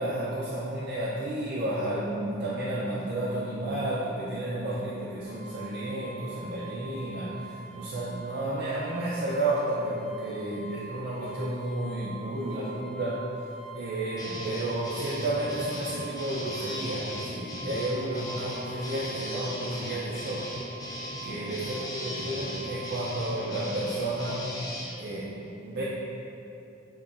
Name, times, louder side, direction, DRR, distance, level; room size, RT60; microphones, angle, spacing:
voice 1, 0.0-7.3 7.8-13.2 13.7-20.5 21.2-24.5 25.0-25.8, right 1 dB, 50° right, -7 dB, 0.4 m, -32 dB
sound 1, 5.2-23.2, right 3 dB, 30° right, 1.1 m, -45 dB
sound 2, 14.2-24.8, left 1 dB, 20° left, 0.4 m, -38 dB
5.5 x 2.2 x 2.4 m, 2.9 s
head